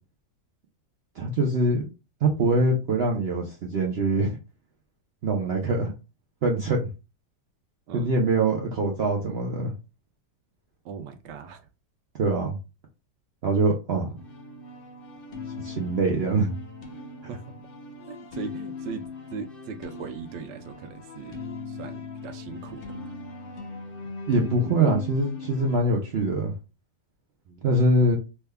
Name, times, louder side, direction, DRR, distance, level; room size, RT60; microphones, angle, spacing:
voice 1, 1.2-1.9 2.2-4.4 5.2-5.9 6.4-6.8 7.9-9.7 12.2-12.6 13.4-14.2 15.6-16.5 24.3-26.5 27.6-28.2, right 2 dB, 70° right, 0 dB, 0.6 m, -23 dB
voice 2, 10.8-11.7 17.3-17.4 18.0-21.4 21.7-23.1 27.5-27.7, right 6 dB, 85° right, 8 dB, 1.2 m, -39 dB
sound 1, 14.2-25.8, left 4 dB, 60° left, 0.5 m, -39 dB
3.4 x 3.3 x 2.2 m, 0.29 s
omnidirectional pair, 1.8 m